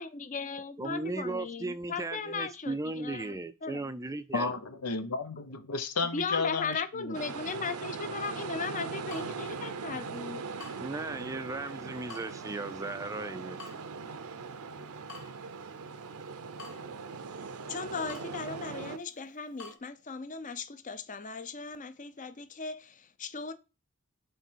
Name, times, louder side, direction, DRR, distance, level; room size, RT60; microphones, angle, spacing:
voice 1, 0.0-3.8 6.1-10.5 17.7-23.5, left 4 dB, 35° left, 0.6 m, -37 dB
voice 2, 0.8-4.5 10.8-13.6, right 2 dB, 15° right, 0.4 m, -36 dB
voice 3, 4.3-7.2, left 4 dB, 85° left, 1.0 m, -32 dB
sound 1, 7.1-19.0, right 5 dB, 70° right, 0.7 m, -40 dB
Water tap faucet / Drip, 9.1-19.8, left 4 dB, 65° left, 1.5 m, -54 dB
7.8 x 3.4 x 4.5 m
head